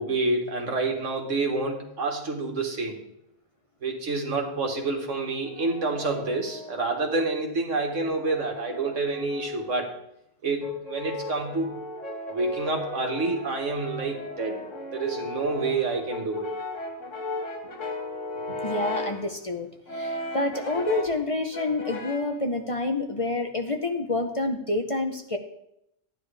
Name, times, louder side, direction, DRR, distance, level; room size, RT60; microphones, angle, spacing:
voice 1, 0.0-3.0 3.8-9.9 10.4-11.7 12.3-14.7 14.9-16.5, right 3 dB, 65° right, 2 dB, 1.8 m, -28 dB
Brass instrument, 5.2-7.2 7.9-9.9 10.6-19.3 19.9-21.2 21.5-22.4, left 2 dB, 65° left, 1.8 m, -36 dB
voice 2, 18.6-25.4, left 2 dB, 30° left, 4 dB, 0.7 m, -28 dB
12.0 x 9.9 x 3.4 m, 0.79 s
omnidirectional pair, 1.4 m